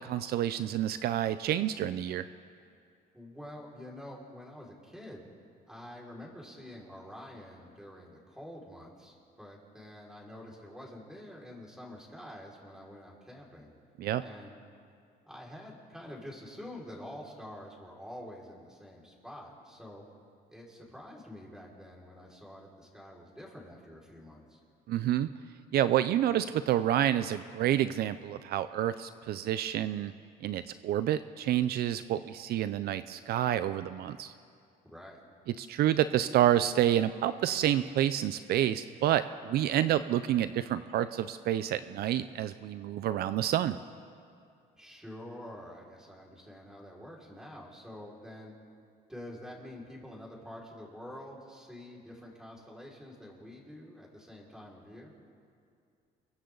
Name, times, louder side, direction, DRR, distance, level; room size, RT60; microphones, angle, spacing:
voice 1, 0.0-2.3 14.0-14.2 24.9-25.3 25.7-30.1 30.4-34.3 35.6-43.8, right 12 dB, 70° right, 12 dB, 0.6 m, -28 dB
voice 2, 3.1-5.3 5.7-13.7 14.2-14.5 15.3-20.0 20.5-24.6 34.8-35.2 44.8-48.5 49.1-55.1, left 1 dB, 5° right, -4 dB, 5.3 m, -47 dB
29.5 x 23.0 x 4.0 m, 2.4 s
cardioid pair, 110°, 17 cm